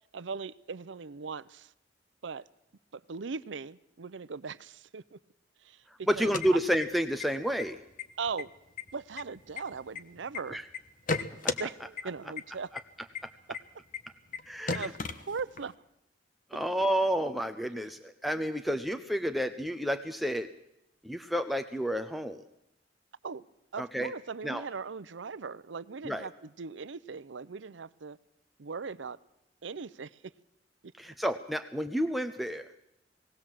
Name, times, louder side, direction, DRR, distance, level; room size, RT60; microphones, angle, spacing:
voice 1, 0.1-1.7 2.2-2.5 2.9-5.2 5.6-6.3 8.2-8.5 8.9-10.6 11.6-12.7 14.7-15.7 23.2-23.4 23.7-28.2 28.6-29.2 29.6-30.2 30.8-30.9, right 5 dB, 85° right, 0.6 m, -39 dB
sound 1, 6.1-7.2 7.6-7.7 8.0-8.4 8.8-10.4 10.7-11.6 12.0-12.1 12.4-12.5 12.8-12.9 13.2-13.3 13.5-13.6 13.9-14.0 14.3-14.4 14.7-15.7, left 4 dB, 50° left, 1.0 m, -34 dB
voice 2, 6.1-7.8 10.5-10.6 11.4-11.5 14.5-14.9 16.5-20.5 21.0-22.4 23.8-24.1 24.4-24.6 26.0-26.3 31.0-32.6, equal, ahead, 0.6 m, -30 dB
19.0 x 18.0 x 7.5 m
head